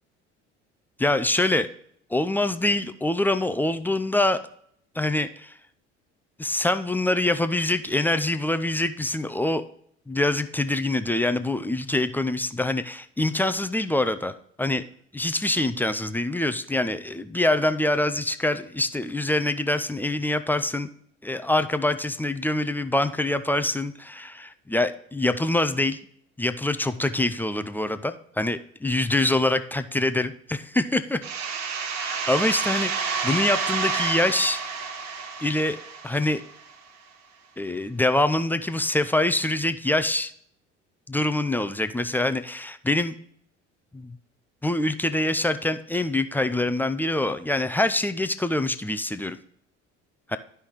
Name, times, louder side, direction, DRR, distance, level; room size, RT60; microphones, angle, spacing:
voice 1, 1.0-1.7 2.1-4.4 5.0-5.5 6.4-9.6 10.1-14.3 14.6-14.8 15.1-20.9 21.2-26.0 26.4-31.2 32.0-34.6 35.4-35.8 36.0-36.4 37.6-40.3 41.1-43.1 43.9-44.2 44.6-49.4 50.3-50.4, left 2 dB, 5° left, 10 dB, 0.4 m, -25 dB
sound 1, 31.2-36.7, right 5 dB, 50° right, 1.1 m, -29 dB
11.5 x 5.5 x 3.0 m, 0.65 s
figure-of-eight pair, 60°, 36 cm